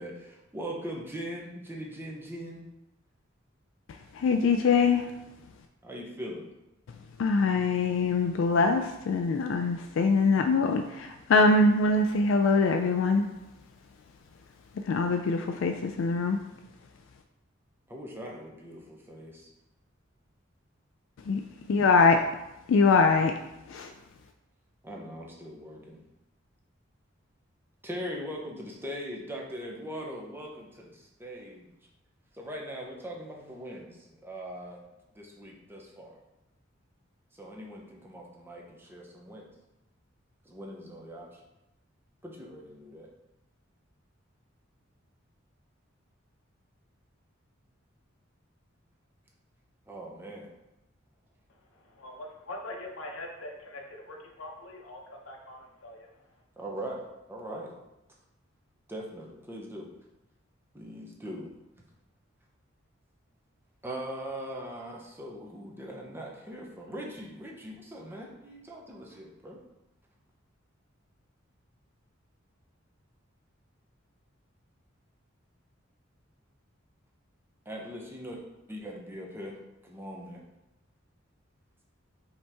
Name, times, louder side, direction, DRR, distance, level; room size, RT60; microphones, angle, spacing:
voice 1, 0.0-2.7 5.8-6.5 17.9-19.5 24.8-26.0 27.8-31.7 32.3-34.8 35.1-36.2 37.3-39.5 40.4-41.4 42.2-43.1 49.9-50.5 56.6-57.8 58.9-59.9 60.7-61.5 63.8-69.6 77.7-78.4 78.7-80.4, equal, 10° right, -1 dB, 0.7 m, -41 dB
voice 2, 4.1-5.1 7.2-13.3 14.9-16.4 21.3-22.2 22.7-23.3 23.7-23.9, left 4 dB, 65° left, 5 dB, 0.3 m, -23 dB
voice 3, 51.8-56.1, left 1 dB, 85° left, 2 dB, 0.8 m, -43 dB
5.3 x 2.9 x 3.4 m, 0.93 s
head